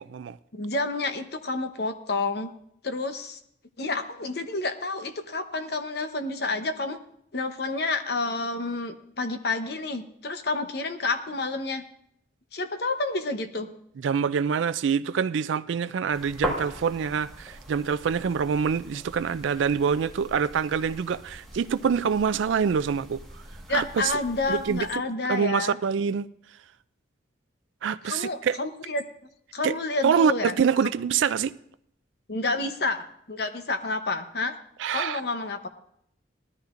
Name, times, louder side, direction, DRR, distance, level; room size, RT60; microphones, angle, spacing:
voice 1, 0.0-0.4 14.0-23.2 23.7-24.1 24.5-24.9 25.3-26.3 27.8-28.6 29.6-29.7 30.0-31.5 34.8-35.2, right 6 dB, 80° right, 0.3 m, -25 dB
voice 2, 0.5-2.5 2.8-3.4 3.8-7.0 7.3-11.8 12.5-13.7 23.7-25.8 28.0-29.0 29.5-30.5 32.3-34.6 34.9-35.7, left 3 dB, 55° left, 0.9 m, -29 dB
sound 1, 16.1-25.0, right 1 dB, ahead, 1.5 m, -40 dB
19.0 x 13.0 x 2.5 m
head